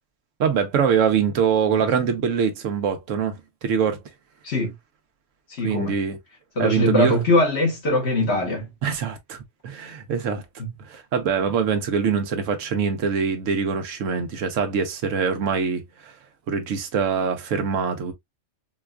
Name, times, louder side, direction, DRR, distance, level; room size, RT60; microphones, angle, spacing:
voice 1, 0.4-4.0 5.6-6.2 6.6-7.2 8.8-9.4 9.6-10.4 10.9-16.1 16.5-18.1, right 6 dB, 80° right, 1.1 m, -23 dB
voice 2, 5.6-5.9 6.6-8.7, left 1 dB, 55° left, 1.4 m, -21 dB
3.9 x 2.4 x 2.2 m
omnidirectional pair, 1.3 m